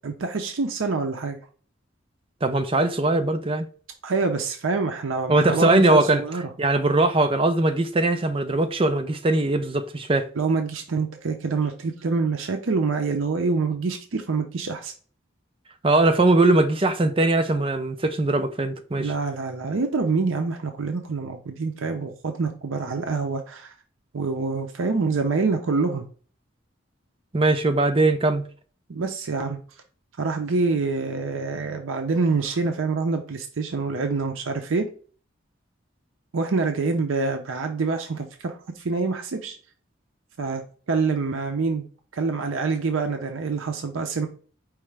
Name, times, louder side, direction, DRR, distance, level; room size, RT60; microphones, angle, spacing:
voice 1, 0.0-1.4 4.0-6.5 10.4-14.9 19.0-23.7 24.1-26.1 28.9-29.6 30.2-34.9 36.3-39.6 40.4-41.9 42.1-44.3, right 4 dB, 85° right, 0.6 m, -26 dB
voice 2, 2.4-3.7 5.3-6.2 6.6-10.3 15.8-19.1 27.3-28.4, right 2 dB, 25° right, 0.5 m, -20 dB
4.8 x 3.2 x 3.3 m
head